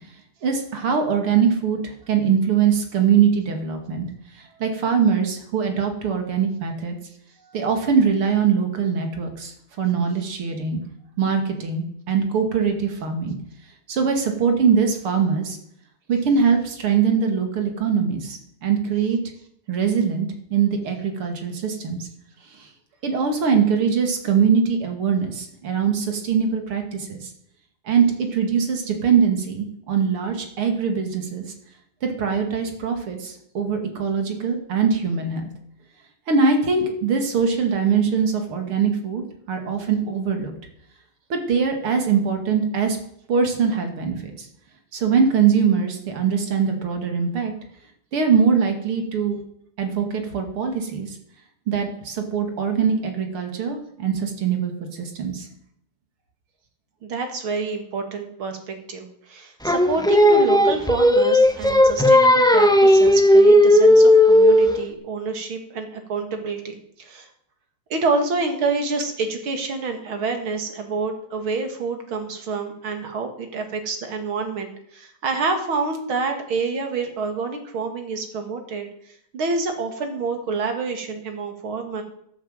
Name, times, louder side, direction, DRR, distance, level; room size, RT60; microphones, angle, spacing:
voice 1, 0.4-1.8 2.1-4.1 4.6-7.0 7.5-10.8 11.2-13.4 13.9-15.6 16.1-19.2 19.7-22.1 22.6-22.7 23.0-27.3 27.9-31.4 32.0-35.5 36.3-40.5 41.3-43.0 43.3-44.5 44.9-47.5 48.1-49.4 49.8-51.2 51.7-55.5, right 6 dB, 90° right, 4 dB, 3.1 m, -22 dB
voice 2, 57.0-67.3 67.9-78.9 79.3-82.0, right 4 dB, 70° right, 5 dB, 2.9 m, -27 dB
Singing, 59.6-64.8, left 1 dB, 5° left, 0.4 m, -14 dB
12.5 x 8.6 x 7.7 m, 0.71 s
omnidirectional pair, 2.3 m